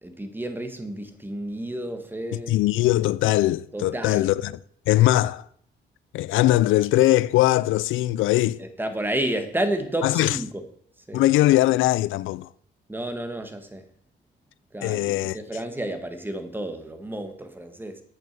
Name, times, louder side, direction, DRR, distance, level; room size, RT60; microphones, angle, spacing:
voice 1, 0.0-2.6 3.7-4.3 8.6-10.6 11.1-11.2 12.9-13.8 14.7-18.0, right 1 dB, 10° right, 1.6 m, -31 dB
voice 2, 2.5-4.6 4.9-5.5 6.1-8.6 10.0-10.4 11.1-12.5 14.8-15.4, left 16 dB, 80° left, 0.4 m, -21 dB
8.8 x 6.5 x 6.7 m
cardioid pair, 90°, 20 cm